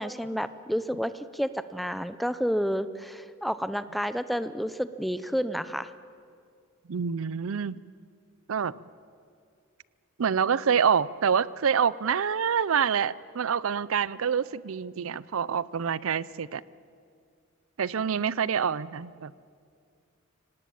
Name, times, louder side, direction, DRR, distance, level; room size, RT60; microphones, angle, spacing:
voice 1, 0.0-5.9, equal, ahead, 13 dB, 0.6 m, -30 dB
voice 2, 6.9-7.8 8.5-8.7 10.2-16.6 17.8-19.3, right 7 dB, 75° right, 20 dB, 0.5 m, -26 dB
26.0 x 18.5 x 8.6 m, 2.3 s
head